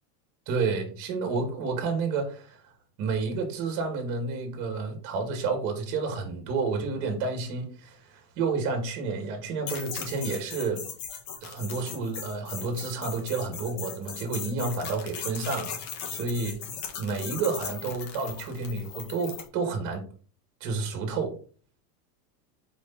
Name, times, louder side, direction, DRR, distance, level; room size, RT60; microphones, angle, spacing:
voice 1, 0.5-2.6 3.0-10.8 11.4-15.8 16.1-16.6 17.0-20.0 20.6-21.3, right 4 dB, 40° right, 3 dB, 2.0 m, -30 dB
sound 1, 9.7-19.5, left 7 dB, 80° left, 1.9 m, -38 dB
5.1 x 4.8 x 4.1 m, 0.41 s
supercardioid pair, 165°, 48 cm